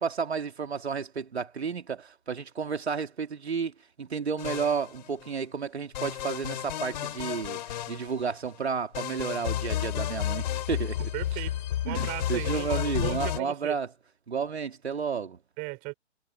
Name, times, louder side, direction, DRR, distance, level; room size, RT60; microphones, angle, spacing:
voice 1, 0.0-7.6 7.9-11.1 11.8-13.9 14.3-15.4, right 6 dB, 60° right, 3.2 m, -32 dB
sound 1, 4.4-5.3 5.9-8.5 8.9-13.4, left 12 dB, 35° left, 4.3 m, -32 dB
voice 2, 11.1-11.6 11.8-13.8 15.6-15.9, right 28 dB, 20° right, 6.8 m, -36 dB
figure-of-eight pair, 135°, 37 cm